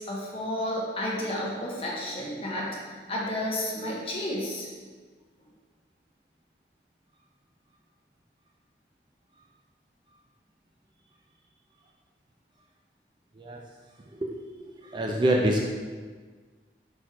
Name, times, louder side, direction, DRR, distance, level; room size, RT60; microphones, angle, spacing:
voice 1, 0.0-4.7, left 1 dB, 30° left, -4 dB, 1.1 m, -32 dB
voice 2, 14.1-15.6, right 1 dB, 25° right, 0 dB, 0.4 m, -27 dB
4.4 x 4.3 x 4.9 m, 1.5 s
head